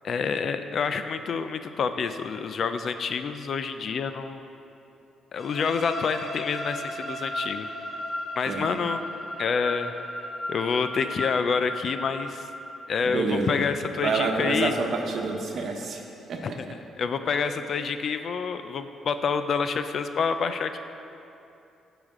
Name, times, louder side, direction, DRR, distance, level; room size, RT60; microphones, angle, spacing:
voice 1, 0.0-4.5 5.3-7.7 8.4-9.0 9.4-9.9 10.5-12.5 12.9-14.7 16.4-20.8, left 5 dB, 55° left, 9 dB, 0.4 m, -28 dB
sound 1, 5.4-13.2, left 1 dB, 30° left, 2.0 m, -35 dB
voice 2, 13.0-13.6 13.9-16.0 16.3-16.7 17.4-17.5, right 4 dB, 60° right, 2 dB, 1.1 m, -28 dB
14.5 x 5.0 x 3.7 m, 2.7 s
cardioid pair, 90°, 0 cm